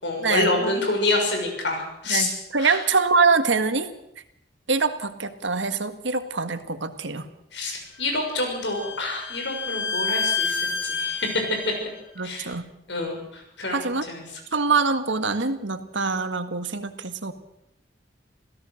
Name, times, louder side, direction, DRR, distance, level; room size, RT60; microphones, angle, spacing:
voice 1, 0.0-2.3 2.6-2.8 7.5-11.3 12.2-12.5 12.9-14.2, left 2 dB, 70° left, 3 dB, 6.5 m, -27 dB
voice 2, 2.1-3.9 4.7-7.3 12.2-12.7 13.7-14.1 14.5-17.3, right 4 dB, 85° right, 9 dB, 1.8 m, -24 dB
Bowed string instrument, 8.0-11.8, left 4 dB, 90° left, 3.8 m, -29 dB
27.0 x 16.5 x 6.6 m, 0.80 s
head